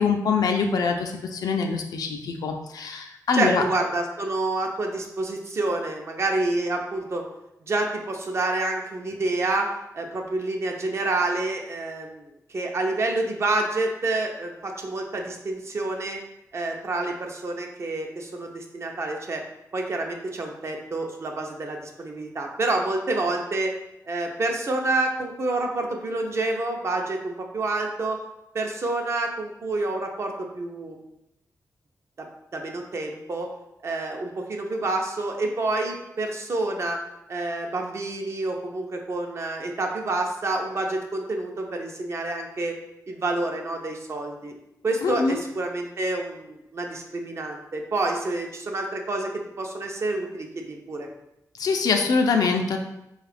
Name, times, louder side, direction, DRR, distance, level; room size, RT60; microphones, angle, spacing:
voice 1, 0.0-3.6 45.0-45.4 51.6-52.8, left 5 dB, 90° left, 4 dB, 0.5 m, -24 dB
voice 2, 3.3-7.2 7.6-9.7 9.9-16.2 16.5-19.4 19.7-23.7 24.1-28.2 28.5-31.0 32.5-33.5 33.8-37.0 37.3-42.7 43.1-44.5 44.8-49.3 49.6-51.1, right 2 dB, 45° right, 2 dB, 0.6 m, -28 dB
4.6 x 2.4 x 3.3 m, 0.88 s
wide cardioid pair, 125°, 6 cm